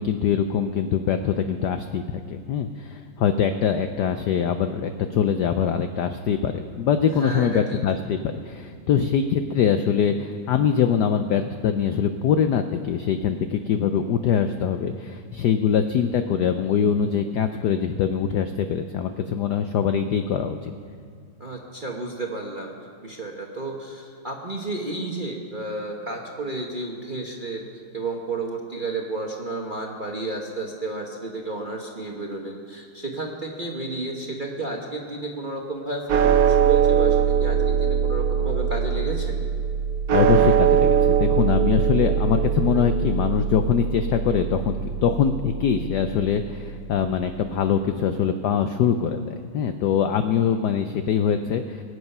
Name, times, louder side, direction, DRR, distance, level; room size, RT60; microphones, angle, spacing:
voice 1, 0.0-20.7 40.1-44.8 45.0-51.8, left 7 dB, 80° left, 8 dB, 0.9 m, -23 dB
voice 2, 7.1-7.8 21.4-22.7 23.0-27.7 27.9-39.3, right 2 dB, 35° right, 0 dB, 0.8 m, -32 dB
sound 1, 36.1-46.5, right 8 dB, 65° right, 0.9 m, -22 dB
23.0 x 8.1 x 5.5 m, 2.2 s
omnidirectional pair, 2.4 m